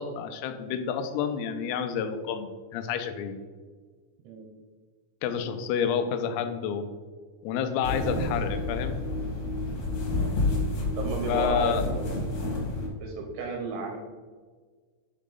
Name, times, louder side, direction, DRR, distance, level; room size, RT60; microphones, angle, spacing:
voice 1, 0.0-3.4 5.2-6.9 7.4-9.1 11.3-11.8, left 7 dB, 90° left, 8 dB, 3.3 m, -29 dB
sound 1, 7.8-12.9, left 2 dB, 70° left, 1.7 m, -29 dB
voice 2, 10.8-12.1 13.0-14.0, right 4 dB, 80° right, 1 dB, 2.7 m, -33 dB
9.2 x 3.7 x 3.9 m, 1.5 s
omnidirectional pair, 5.9 m